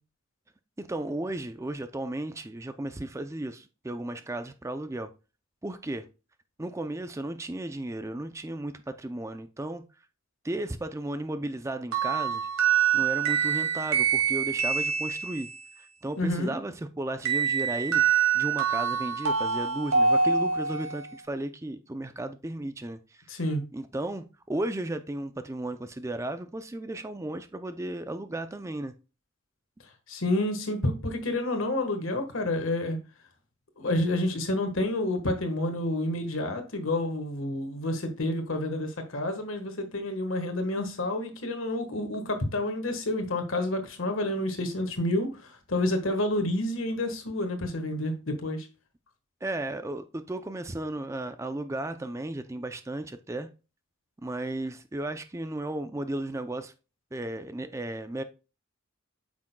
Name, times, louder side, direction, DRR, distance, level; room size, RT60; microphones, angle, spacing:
voice 1, 0.8-5.1 5.6-6.1 6.6-9.8 10.4-12.5 12.9-15.5 15.8-18.0 18.3-23.2 23.7-28.9 49.4-53.5 54.2-56.7 57.1-58.2, right 1 dB, 15° right, 0.4 m, -34 dB
sound 1, 11.9-15.7 17.2-21.0, right 6 dB, 80° right, 2.1 m, -25 dB
voice 2, 16.2-16.6 23.3-23.6 30.1-33.0 33.8-48.7, left 1 dB, 70° left, 1.4 m, -29 dB
8.6 x 6.1 x 2.2 m
head